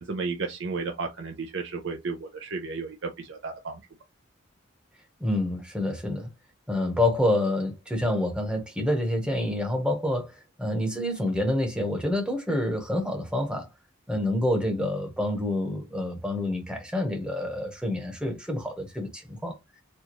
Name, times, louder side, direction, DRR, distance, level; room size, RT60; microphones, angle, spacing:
voice 1, 0.0-3.8, right 4 dB, 60° right, 0.5 m, -33 dB
voice 2, 5.2-6.3 6.7-13.7 14.1-19.6, left 1 dB, 5° right, 0.9 m, -27 dB
4.3 x 2.3 x 3.0 m
head